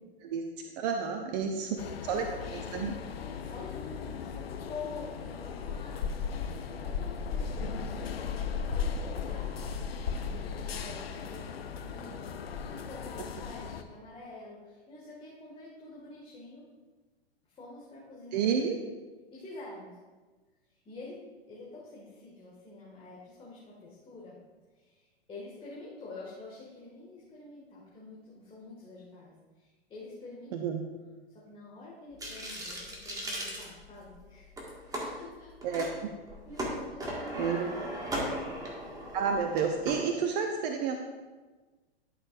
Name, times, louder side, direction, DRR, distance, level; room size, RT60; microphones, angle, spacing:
voice 1, 0.8-1.7 2.0-2.3 2.5-3.0 18.3-18.8 30.5-30.8 35.6-35.9 37.4-37.7 39.1-41.0, right 6 dB, 40° right, 4 dB, 0.8 m, -30 dB
voice 2, 1.3-1.6 2.1-2.6 3.2-16.6 17.4-18.7 19.3-20.0 20.7-24.4 24.7-30.8 31.3-34.5 34.9-35.8 36.4-38.4 40.2-40.3, left 3 dB, 15° left, -5 dB, 1.9 m, -47 dB
sound 1, 1.8-13.8, left 6 dB, 65° left, 0.7 m, -36 dB
sound 2, 32.2-34.2 34.6-35.1 35.6-35.9 36.2-39.9, right 1 dB, 10° right, 1.8 m, -37 dB
12.0 x 6.6 x 2.5 m, 1.3 s
figure-of-eight pair, 100°, 32 cm